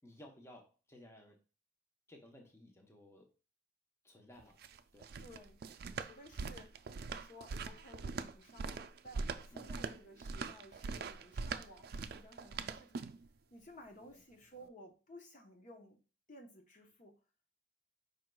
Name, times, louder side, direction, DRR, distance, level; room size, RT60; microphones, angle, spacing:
voice 1, 0.0-1.4 2.1-3.3 4.0-4.6 4.9-5.1 9.5-9.8 14.1-14.2 14.6-14.7, left 1 dB, 15° left, 2 dB, 0.9 m, -57 dB
sound 1, 4.4-13.3, right 4 dB, 60° right, 0.4 m, -42 dB
voice 2, 5.2-5.6 5.9-6.8 7.2-13.0 13.5-16.0 16.3-17.2, equal, 45° left, 3 dB, 0.9 m, -56 dB
5.1 x 4.6 x 2.3 m, 0.33 s
head